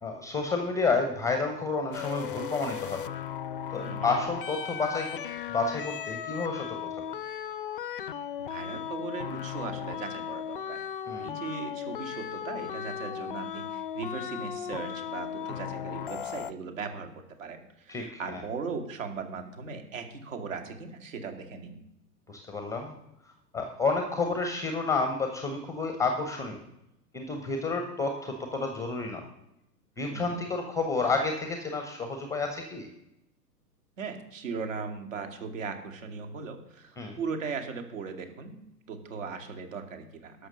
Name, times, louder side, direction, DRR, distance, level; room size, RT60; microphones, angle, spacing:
voice 1, 0.0-3.1 3.7-5.2 5.5-6.8 11.1-11.4 17.9-18.1 18.3-18.4 22.3-22.9 23.5-26.6 27.1-29.3 30.0-32.9 37.0-37.2, left 3 dB, 5° left, 5 dB, 0.7 m, -30 dB
sound 1, 1.9-16.5, left 9 dB, 35° left, 0.4 m, -36 dB
voice 2, 3.8-4.1 8.5-10.8 11.2-21.8 30.1-30.4 34.0-40.5, right 5 dB, 50° right, 5 dB, 2.3 m, -38 dB
12.5 x 6.1 x 6.5 m, 0.85 s
figure-of-eight pair, 105°, 49 cm